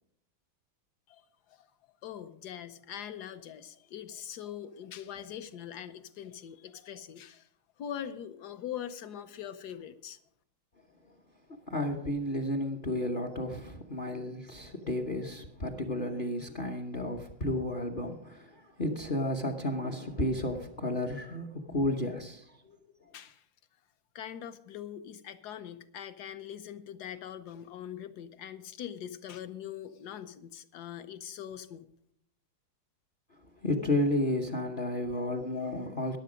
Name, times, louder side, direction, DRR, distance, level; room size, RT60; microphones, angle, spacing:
voice 1, 2.0-7.5 7.8-10.2 23.1-23.4 24.1-31.9, left 9 dB, 65° left, 12 dB, 1.1 m, -42 dB
voice 2, 11.7-22.8 33.6-36.2, left 1 dB, 40° left, 5 dB, 0.7 m, -32 dB
14.5 x 10.5 x 5.0 m, 0.73 s
omnidirectional pair, 2.3 m